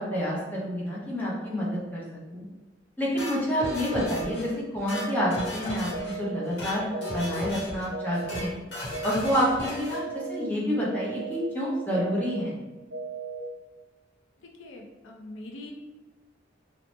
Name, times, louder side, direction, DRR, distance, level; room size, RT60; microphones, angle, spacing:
voice 1, 0.0-2.0 2.3-2.5 3.0-6.9 7.1-8.6 9.0-12.6, equal, 10° left, -6 dB, 0.6 m, -28 dB
sound 1, 3.2-4.4 4.7-6.1 6.4-6.8 7.0-7.8 8.1-8.4 8.7-10.0, left 1 dB, 65° left, 0.9 m, -36 dB
sound 2, 3.9-4.4 4.9-5.4 5.9-6.4 6.9-7.4 7.9-8.4 8.9-9.4 9.9-10.4 10.9-11.4 11.9-12.4 12.9-13.4, right 5 dB, 75° right, 0.6 m, -36 dB
voice 2, 14.6-15.7, left 2 dB, 85° left, 1 dB, 0.5 m, -43 dB
2.9 x 2.0 x 3.0 m, 1.1 s
head